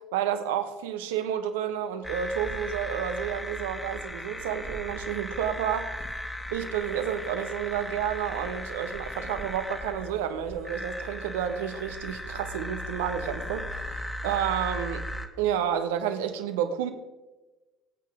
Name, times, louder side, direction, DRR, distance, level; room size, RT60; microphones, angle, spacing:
voice 1, 0.1-6.0 6.5-15.0 15.4-16.9, right 9 dB, 70° right, 1.2 m, -30 dB
sound 1, 2.0-15.3, left 1 dB, 5° left, 1.8 m, -37 dB
22.0 x 8.6 x 3.7 m
figure-of-eight pair, 60°, 0 cm